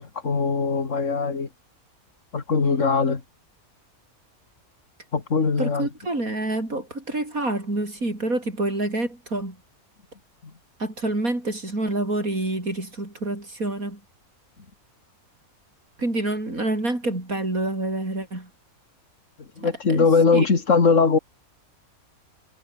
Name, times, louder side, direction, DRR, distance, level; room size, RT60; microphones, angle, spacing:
voice 1, 0.0-1.5 2.3-3.2 5.1-5.9 19.6-21.2, left 4 dB, 55° left, 2.7 m, -21 dB
voice 2, 5.6-9.6 10.8-14.0 16.0-18.5 19.9-20.1 20.3-20.5, right 2 dB, 70° right, 7.3 m, -27 dB
omnidirectional pair, 1.5 m